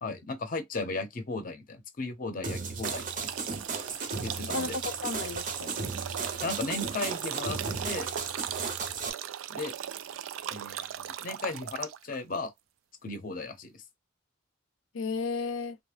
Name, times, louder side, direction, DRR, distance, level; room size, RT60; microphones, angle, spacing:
voice 1, 0.0-3.3 4.2-4.8 6.4-7.6 7.8-8.1 9.5-9.7 10.5-12.5 13.0-13.8, left 3 dB, 45° left, 0.6 m, -36 dB
sound 1, 2.4-9.1, right 4 dB, 40° right, 0.6 m, -35 dB
sound 2, 2.8-12.2, right 10 dB, 85° right, 0.3 m, -38 dB
voice 2, 4.5-5.8 14.9-15.8, left 4 dB, 85° left, 0.5 m, -34 dB
2.6 x 2.0 x 3.2 m
head